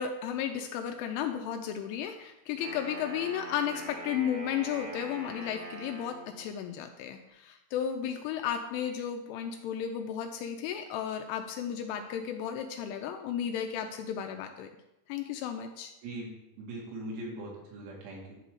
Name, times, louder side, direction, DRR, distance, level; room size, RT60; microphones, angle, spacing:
voice 1, 0.0-14.7 15.1-15.9, left 9 dB, 85° left, 5 dB, 2.9 m, -34 dB
Wind instrument woodwind instrument, 2.5-6.5, right 1 dB, 50° right, 2.6 m, -43 dB
voice 2, 16.0-18.3, right 1 dB, 85° right, -4 dB, 5.0 m, -41 dB
11.0 x 3.8 x 6.5 m, 0.91 s
omnidirectional pair, 6.0 m